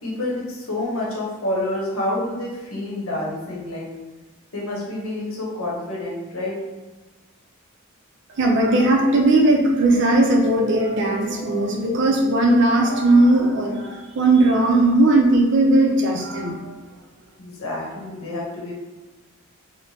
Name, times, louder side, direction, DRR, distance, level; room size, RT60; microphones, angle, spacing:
voice 1, 0.0-3.9 4.5-6.6 17.4-18.7, left 1 dB, 75° left, -3 dB, 0.8 m, -28 dB
voice 2, 8.4-16.7, right 2 dB, 55° right, 1 dB, 0.5 m, -18 dB
3.2 x 2.1 x 2.7 m, 1.2 s
head